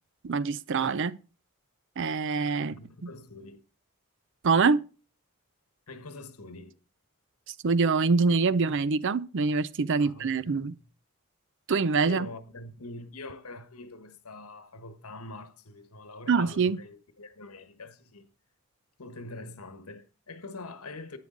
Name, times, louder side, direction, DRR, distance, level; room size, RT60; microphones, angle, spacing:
voice 1, 0.2-1.2 2.0-2.7 3.0-3.1 4.4-4.8 7.6-10.8 11.7-12.3 16.3-16.8, right 4 dB, 55° right, 0.5 m, -25 dB
voice 2, 2.6-3.6 5.9-6.8 10.0-10.8 12.0-18.3 19.0-21.2, left 2 dB, 85° left, 1.4 m, -44 dB
10.5 x 9.4 x 3.9 m
head